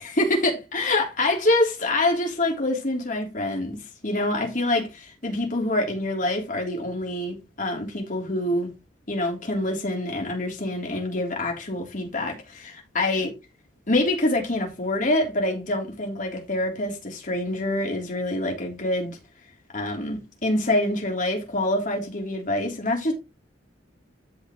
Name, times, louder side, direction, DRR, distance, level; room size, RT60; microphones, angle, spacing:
voice 1, 0.0-3.8 4.0-8.7 9.1-13.3 13.9-19.2 19.7-23.1, left 1 dB, 45° left, 3.5 m, -26 dB
13.0 x 6.0 x 3.2 m
head